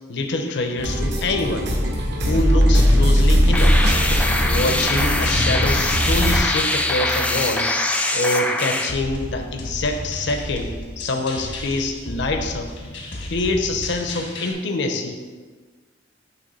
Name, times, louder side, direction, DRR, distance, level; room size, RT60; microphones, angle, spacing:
voice 1, 0.1-1.8 2.3-3.9 4.4-7.7 8.1-12.7 13.3-15.1, left 2 dB, 65° left, 5 dB, 0.7 m, -25 dB
sound 1, 0.8-6.4, equal, 65° right, 1.0 m, -19 dB
sound 2, 3.5-8.9, left 1 dB, 5° left, 0.3 m, -22 dB
sound 3, 8.9-14.5, left 1 dB, 85° left, 1.3 m, -33 dB
7.0 x 3.0 x 5.3 m, 1.4 s
head